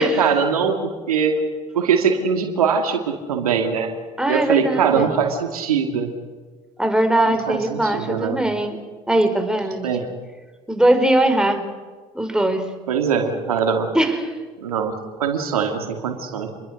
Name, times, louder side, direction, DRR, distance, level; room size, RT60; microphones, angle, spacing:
voice 1, 0.0-1.4 1.7-3.9 4.3-6.1 7.3-8.4 9.8-10.1 12.9-13.9 14.6-14.9 15.2-16.5, right 6 dB, 90° right, 5 dB, 2.4 m, -21 dB
voice 2, 4.2-5.1 6.8-8.8 9.1-9.9 10.7-11.6 12.1-12.6 13.9-14.3, right 1 dB, 5° right, 5 dB, 5.1 m, -20 dB
28.5 x 22.5 x 6.5 m, 1.4 s
hypercardioid pair, 60°, 18 cm